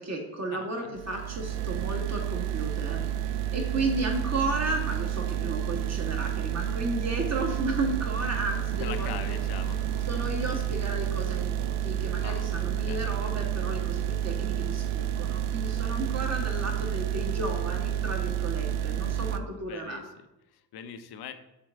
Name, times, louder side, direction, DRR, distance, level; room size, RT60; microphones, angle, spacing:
voice 1, 0.0-3.0 3.5-9.1 10.1-20.0, right 2 dB, 30° right, 2 dB, 1.8 m, -33 dB
voice 2, 0.5-1.0 8.8-10.2 12.2-12.6 12.9-13.3 19.5-21.3, left 9 dB, 50° left, 9 dB, 0.7 m, -42 dB
sound 1, 0.9-19.4, right 10 dB, 70° right, 0.6 m, -30 dB
sound 2, 8.7-13.4, left 3 dB, 85° left, 1.1 m, -48 dB
7.4 x 4.2 x 3.6 m, 0.97 s
hypercardioid pair, 50°, 49 cm